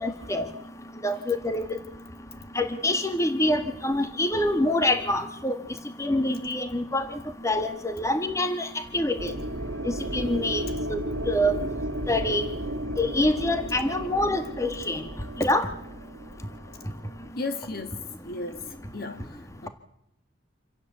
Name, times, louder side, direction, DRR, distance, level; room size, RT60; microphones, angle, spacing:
voice 1, 0.0-0.5 1.0-1.6 2.6-5.6 6.0-7.1 7.4-8.7 8.9-9.3 10.1-10.6 10.9-11.0 11.3-11.5 12.1-12.5 13.0-15.0 15.4-15.7, left 1 dB, 15° left, 1.7 m, -25 dB
sound 1, 9.2-17.3, right 1 dB, 85° right, 1.9 m, -34 dB
voice 2, 17.4-18.6 18.9-19.7, left 3 dB, 50° left, 1.9 m, -35 dB
27.0 x 16.5 x 8.3 m
head